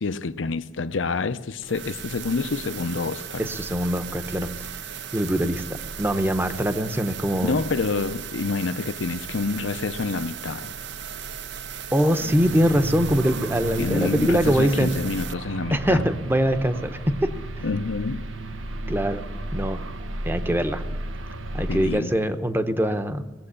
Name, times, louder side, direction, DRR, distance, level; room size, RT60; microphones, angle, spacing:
voice 1, 0.0-3.5 7.4-10.8 13.8-16.0 17.6-18.3 21.7-22.1, left 4 dB, 75° left, 0.7 m, -27 dB
sound 1, 1.6-15.3, right 7 dB, 65° right, 0.6 m, -37 dB
voice 2, 3.4-4.5 5.1-5.6 6.0-7.6 11.9-15.0 15.7-17.3 18.9-19.2 19.5-19.8 20.2-20.8 21.5-23.3, equal, 10° right, 0.8 m, -23 dB
sound 2, 12.2-22.0, right 2 dB, 85° right, 1.0 m, -33 dB
18.5 x 7.7 x 9.9 m
head